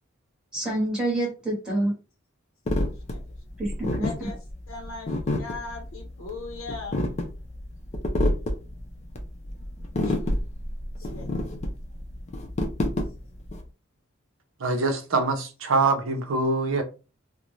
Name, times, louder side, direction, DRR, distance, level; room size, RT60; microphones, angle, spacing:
voice 1, 0.5-1.9 3.6-4.3, right 1 dB, 5° right, 1.0 m, -27 dB
sound 1, 2.7-13.6, left 1 dB, 35° left, 0.5 m, -28 dB
voice 2, 2.9-3.2 4.0-7.0 9.9-10.4 11.0-11.4, left 3 dB, 85° left, 0.6 m, -40 dB
voice 3, 14.6-16.8, right 3 dB, 70° right, 0.6 m, -24 dB
2.5 x 2.1 x 3.0 m
head